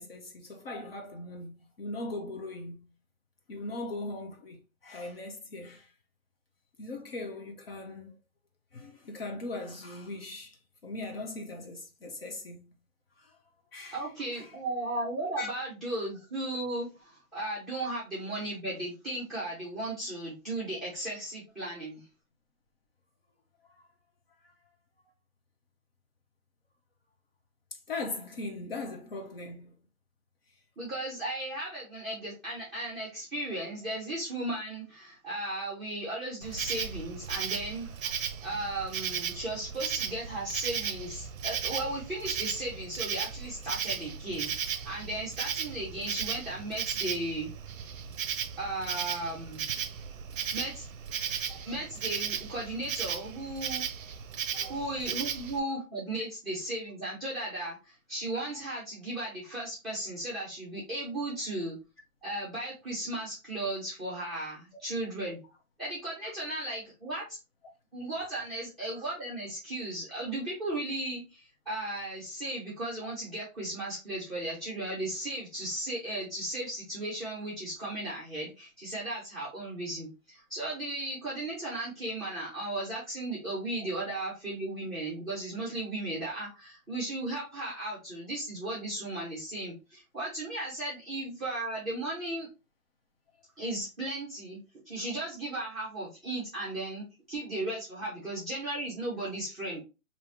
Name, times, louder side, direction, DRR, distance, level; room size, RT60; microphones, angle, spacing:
voice 1, 0.0-1.5 1.8-2.8 3.5-5.9 6.8-8.2 8.7-10.6 10.8-12.6 13.2-13.3 13.7-14.0 14.3-14.5 15.4-15.5 27.9-29.7 51.5-51.7 54.5-54.7, left 2 dB, 45° left, 0.7 m, -39 dB
voice 2, 13.9-22.0 30.8-37.9 38.4-47.5 48.6-49.7 50.5-50.8 51.6-53.8 54.7-61.8 62.2-65.4 65.8-67.4 67.9-92.5 93.6-94.6 94.8-99.8, right 1 dB, ahead, 0.7 m, -36 dB
Insect, 36.4-55.6, right 8 dB, 70° right, 0.5 m, -36 dB
3.4 x 2.8 x 2.8 m
hypercardioid pair, 160°, 41 cm